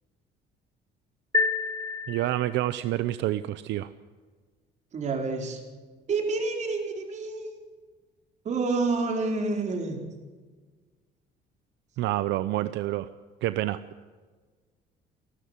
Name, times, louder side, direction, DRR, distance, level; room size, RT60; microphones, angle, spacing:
sound 1, 1.3-2.8, left 3 dB, 20° left, 1.6 m, -29 dB
voice 1, 2.1-3.9 12.0-13.1 13.4-13.8, right 15 dB, 75° right, 13 dB, 0.8 m, -28 dB
voice 2, 4.9-5.6 6.1-7.5 8.4-10.0, right 3 dB, 40° right, 2 dB, 4.6 m, -28 dB
29.5 x 12.5 x 8.1 m, 1.4 s
cardioid pair, 145°, 19 cm